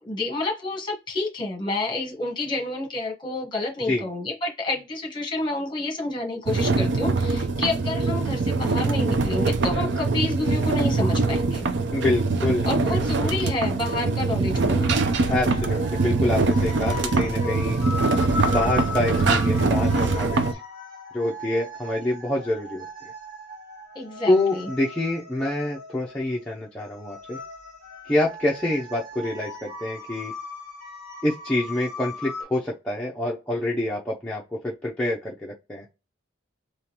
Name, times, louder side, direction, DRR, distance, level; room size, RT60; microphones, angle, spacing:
voice 1, 0.0-11.7 12.6-14.9 23.9-24.7, left 2 dB, 25° left, 1.3 m, -29 dB
sound 1, 6.5-20.5, right 3 dB, 60° right, 0.5 m, -23 dB
voice 2, 11.9-13.4 15.3-17.8 18.5-20.6 21.1-23.1 24.3-27.4 28.0-30.3 31.2-35.8, left 1 dB, 5° left, 0.6 m, -27 dB
sound 2, 14.9-32.4, left 4 dB, 45° right, 1.6 m, -37 dB
3.7 x 3.0 x 2.9 m
head